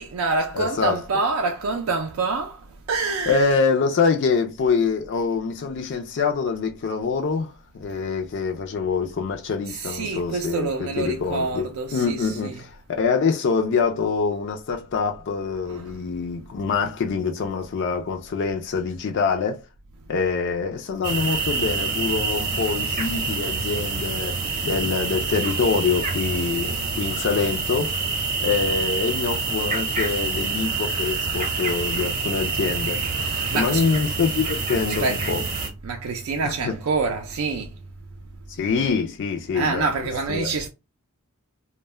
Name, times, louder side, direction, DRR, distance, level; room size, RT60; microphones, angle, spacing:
voice 1, 0.0-2.6 2.9-3.5 9.7-12.6 15.7-15.9 21.3-21.4 33.2-33.9 35.0-35.2 35.8-37.7 39.5-40.7, right 4 dB, 70° right, 0.4 m, -27 dB
voice 2, 0.5-1.0 3.3-12.7 13.0-19.6 20.1-28.0 28.4-33.0 33.5-35.4 36.4-36.7 38.5-39.9 40.3-40.5, left 5 dB, 55° left, 0.4 m, -25 dB
sound 1, 21.0-35.7, right 4 dB, 35° right, 0.7 m, -27 dB
2.2 x 2.1 x 3.2 m
head